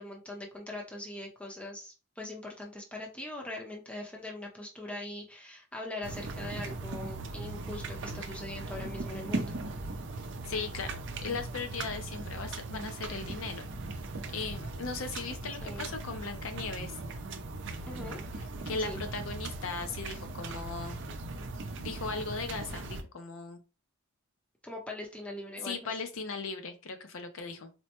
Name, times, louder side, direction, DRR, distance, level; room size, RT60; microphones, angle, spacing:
voice 1, 0.0-9.6 15.6-15.9 17.9-18.2 18.8-19.0 24.6-25.9, left 1 dB, 5° left, -1 dB, 0.7 m, -41 dB
sound 1, 6.0-23.0, right 2 dB, 55° right, 0.5 m, -39 dB
voice 2, 10.2-11.0 11.2-13.6 14.3-16.9 18.7-21.0 21.8-23.6 25.6-27.7, left 4 dB, 65° left, 7 dB, 0.6 m, -38 dB
4.3 x 2.1 x 2.9 m, 0.31 s
head